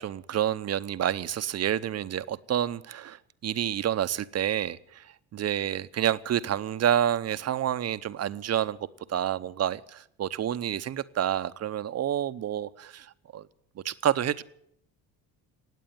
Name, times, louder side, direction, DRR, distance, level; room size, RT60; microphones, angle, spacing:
voice 1, 0.0-8.8 9.1-13.5 13.8-14.4, right 10 dB, 40° right, 14 dB, 0.7 m, -29 dB
18.5 x 8.4 x 9.3 m, 0.74 s
supercardioid pair, 90°, 38 cm